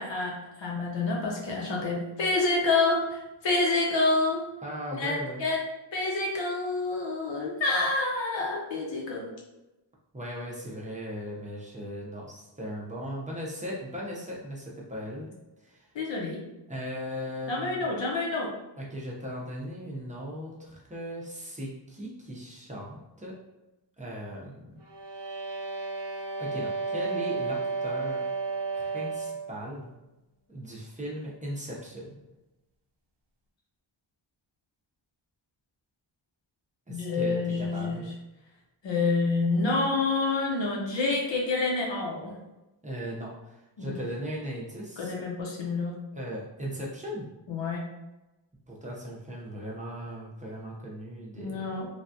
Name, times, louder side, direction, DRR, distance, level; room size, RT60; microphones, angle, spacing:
voice 1, 0.0-4.4 4.9-5.6 5.9-9.3 15.9-16.4 17.5-18.5 36.9-38.0 38.8-42.3 43.8-43.9 45.0-45.9 47.5-47.8 51.4-51.9, left 3 dB, 75° left, -2 dB, 0.8 m, -28 dB
voice 2, 4.6-5.4 10.1-15.3 15.6-15.9 16.7-17.8 18.8-23.4 24.0-24.8 26.4-28.3 28.7-29.9 30.5-32.1 36.9-38.1 42.8-45.3 46.1-47.3 48.7-51.8, equal, 15° right, -4 dB, 0.5 m, -38 dB
sound 1, 24.8-29.5, right 4 dB, 65° right, 0.6 m, -32 dB
3.2 x 2.3 x 2.6 m, 0.98 s
wide cardioid pair, 140°, 45 cm